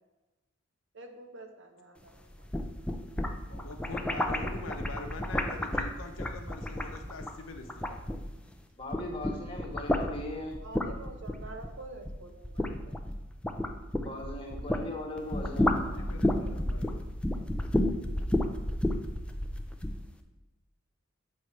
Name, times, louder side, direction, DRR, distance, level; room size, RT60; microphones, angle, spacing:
voice 1, 0.9-2.5 10.6-12.9, right 2 dB, 65° right, 5 dB, 0.9 m, -47 dB
sound 1, 2.3-8.5 8.8-14.9 15.2-20.0, left 1 dB, 5° left, 0.4 m, -31 dB
voice 2, 3.5-8.0 15.7-17.0, left 3 dB, 85° left, 5 dB, 0.9 m, -44 dB
voice 3, 8.8-10.6 14.0-16.0, left 1 dB, 25° left, -1 dB, 1.3 m, -39 dB
7.7 x 3.2 x 5.6 m, 1.0 s
head